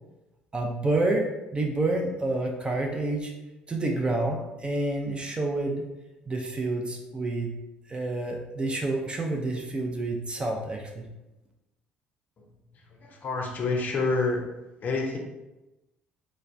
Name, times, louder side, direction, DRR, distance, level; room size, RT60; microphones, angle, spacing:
voice 1, 0.5-3.3 3.7-5.8 6.3-7.5 7.9-11.1, right 2 dB, 20° right, 1 dB, 0.4 m, -28 dB
voice 2, 12.7-14.4 14.8-15.2, left 3 dB, 40° left, 1 dB, 0.5 m, -28 dB
3.1 x 2.1 x 2.5 m, 1.0 s
figure-of-eight pair, 55°, 4 cm